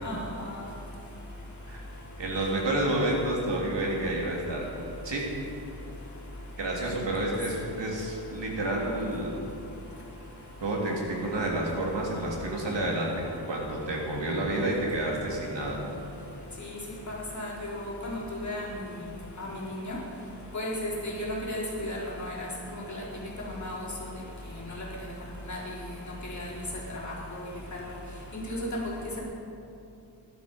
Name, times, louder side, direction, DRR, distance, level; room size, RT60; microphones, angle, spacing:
voice 1, 2.2-4.6 5.0-5.2 6.6-9.4 10.6-15.8, right 1 dB, 75° right, -2 dB, 3.4 m, -29 dB
voice 2, 17.1-18.7 19.4-20.0 20.5-23.0 23.4-23.8 25.5-25.6 26.3-26.5 26.9-27.1 28.3-29.0, left 1 dB, 40° left, -5 dB, 4.0 m, -34 dB
20.0 x 11.5 x 5.4 m, 2.8 s
wide cardioid pair, 125°, 44 cm